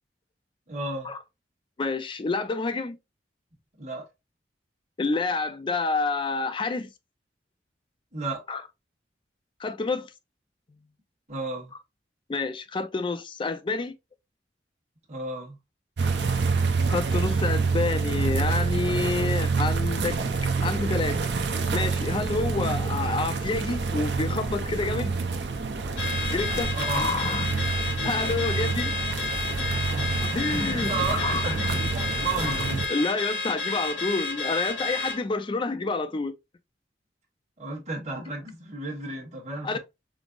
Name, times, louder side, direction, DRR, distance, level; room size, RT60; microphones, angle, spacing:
voice 1, 0.7-1.1 3.8-4.0 8.1-8.4 11.3-11.7 15.1-15.6 26.7-27.3 29.9-32.9 37.6-39.8, right 3 dB, 40° right, 1.3 m, -33 dB
voice 2, 1.8-3.0 5.0-6.9 8.5-8.6 9.6-10.1 12.3-14.0 16.9-20.2 20.6-21.2 21.7-25.1 26.3-27.5 27.8-28.9 30.2-31.5 32.5-32.6 32.9-36.3 39.6-39.8, left 3 dB, 30° left, 0.4 m, -28 dB
sound 1, 16.0-32.9, right 4 dB, 70° right, 0.6 m, -27 dB
Car / Alarm, 26.0-35.2, left 3 dB, 85° left, 1.6 m, -31 dB
5.1 x 2.0 x 2.4 m
head